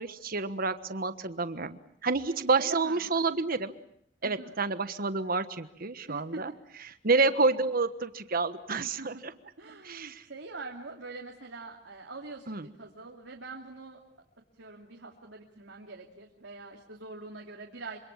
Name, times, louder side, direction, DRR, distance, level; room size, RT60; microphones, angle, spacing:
voice 1, 0.0-3.7 4.2-6.5 7.0-9.1 9.8-10.2 12.5-12.6, right 3 dB, 50° right, 11 dB, 1.3 m, -29 dB
voice 2, 2.6-3.1 4.2-4.6 6.1-6.6 7.3-7.5 8.8-9.1 9.6-14.0 14.6-18.0, right 3 dB, 75° right, 0 dB, 2.7 m, -44 dB
26.0 x 26.0 x 7.3 m, 0.69 s
head